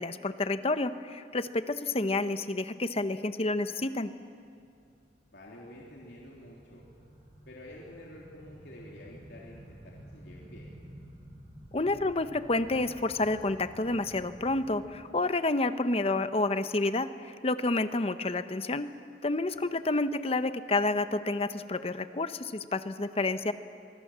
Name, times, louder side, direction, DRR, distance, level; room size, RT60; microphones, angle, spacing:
voice 1, 0.0-4.1 11.7-18.9 19.2-23.5, left 2 dB, 35° left, 11 dB, 0.8 m, -29 dB
sound 1, 4.4-15.0, equal, 35° right, 4.7 m, -51 dB
voice 2, 5.2-6.8 7.5-10.7 19.5-19.7, left 1 dB, 75° left, -4 dB, 3.5 m, -49 dB
24.5 x 23.0 x 7.4 m, 2.4 s
head